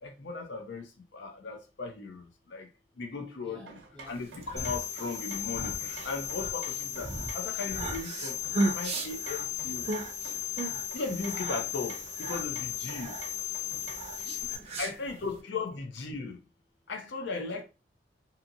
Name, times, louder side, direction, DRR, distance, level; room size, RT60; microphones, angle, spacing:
voice 1, 0.0-2.7 3.0-3.8 4.1-8.4 8.7-9.9 10.9-13.2 14.8-16.4 16.9-17.6, left 4 dB, 65° left, 0.5 m, -37 dB
voice 2, 3.4-4.2 14.2-14.8 17.3-17.6, left 2 dB, 5° left, 0.7 m, -51 dB
sound 1, 3.7-14.2, right 3 dB, 75° right, 0.6 m, -49 dB
sound 2, 4.2-15.4, right 2 dB, 35° right, 0.5 m, -36 dB
sound 3, 4.6-14.6, left 9 dB, 35° left, 0.8 m, -36 dB
2.7 x 2.6 x 2.5 m
head